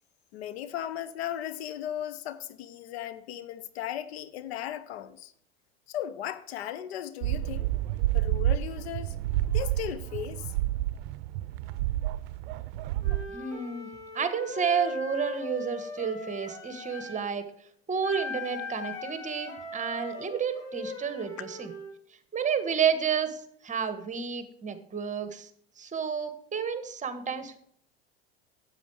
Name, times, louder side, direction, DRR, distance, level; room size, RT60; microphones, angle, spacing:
voice 1, 0.3-5.3 5.9-7.7 8.1-9.1 9.5-10.5, left 11 dB, 75° left, 1.0 m, -36 dB
sound 1, 7.2-13.3, right 14 dB, 65° right, 0.6 m, -29 dB
Wind instrument woodwind instrument, 13.0-17.2 18.0-21.9, left 3 dB, 50° left, 4.7 m, -39 dB
voice 2, 13.3-13.9 14.1-17.4 17.9-21.7 22.3-25.5 25.8-27.6, right 7 dB, 25° right, 1.4 m, -31 dB
9.9 x 8.0 x 4.8 m
hypercardioid pair, 85°, 32 cm